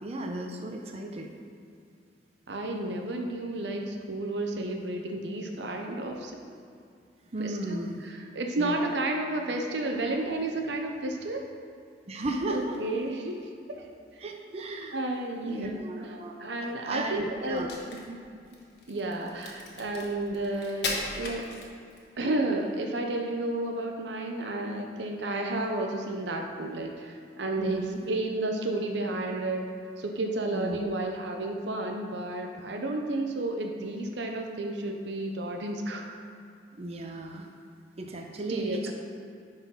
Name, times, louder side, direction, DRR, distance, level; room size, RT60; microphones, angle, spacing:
voice 1, 0.0-1.3 7.3-8.1 8.6-8.8 12.1-12.8 14.2-15.1 15.5-16.3 16.6-17.7 27.6-28.0 30.5-30.8 36.7-37.5 38.0-38.9, right 1 dB, 35° right, 2 dB, 0.6 m, -35 dB
voice 2, 2.5-6.4 7.4-11.5 12.5-13.9 14.9-16.1 16.4-18.2 18.9-21.5 22.2-27.8 28.1-29.7 30.0-36.2 38.5-38.9, right 2 dB, 75° right, 3 dB, 0.7 m, -32 dB
Crack, 17.5-22.1, left 3 dB, 70° left, 1.3 m, -37 dB
9.8 x 4.1 x 5.6 m, 2.4 s
head